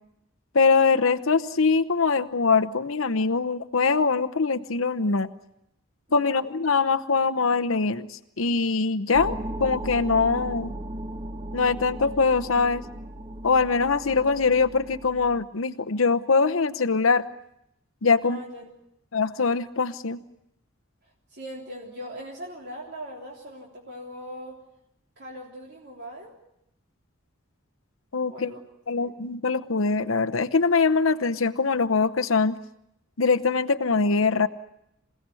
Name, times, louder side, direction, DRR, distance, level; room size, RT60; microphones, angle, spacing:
voice 1, 0.5-5.3 6.1-10.7 11.5-12.8 13.4-17.3 18.0-18.4 19.1-20.2 28.1-28.5 28.9-32.6 33.2-34.5, left 4 dB, 80° left, 8 dB, 0.9 m, -23 dB
voice 2, 6.1-6.5 18.2-18.7 21.3-24.6 25.2-26.3 28.3-28.6 29.0-29.2, equal, 55° right, -2 dB, 3.6 m, -40 dB
sound 1, 9.1-15.4, right 1 dB, 30° right, 0.9 m, -36 dB
28.0 x 17.0 x 9.8 m, 0.80 s
head